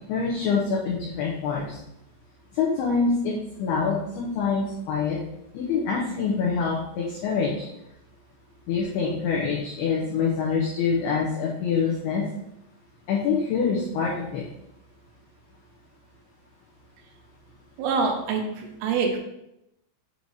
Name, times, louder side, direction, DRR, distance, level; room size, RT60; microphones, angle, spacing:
voice 1, 0.1-1.8 2.5-5.2 5.5-7.7 8.7-12.2 13.1-14.4, left 5 dB, 90° left, -4 dB, 2.3 m, -25 dB
voice 2, 17.8-19.2, right 4 dB, 90° right, 2 dB, 3.4 m, -25 dB
8.0 x 2.7 x 4.7 m, 0.85 s
omnidirectional pair, 5.7 m